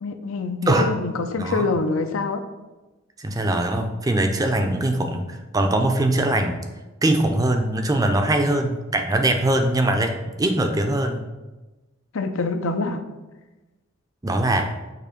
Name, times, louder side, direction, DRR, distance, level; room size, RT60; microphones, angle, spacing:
voice 1, 0.0-2.4 12.1-13.0, left 3 dB, 85° left, 7 dB, 0.5 m, -25 dB
voice 2, 1.4-1.7 3.2-6.6 7.0-11.2 14.2-14.8, right 1 dB, 15° right, 5 dB, 0.4 m, -22 dB
6.7 x 2.8 x 5.1 m, 1.1 s
head